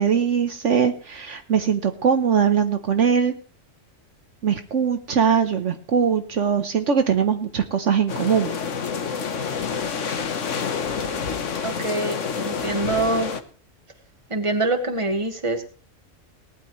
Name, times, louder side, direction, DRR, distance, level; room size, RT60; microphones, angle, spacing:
voice 1, 0.0-3.3 4.4-8.5, right 7 dB, 65° right, 7 dB, 1.3 m, -21 dB
sound 1, 8.1-13.4, left 6 dB, 65° left, 1.5 m, -28 dB
voice 2, 11.6-13.3 14.3-15.6, right 2 dB, 25° right, 5 dB, 1.8 m, -25 dB
19.0 x 13.5 x 3.2 m, 0.41 s
omnidirectional pair, 1.4 m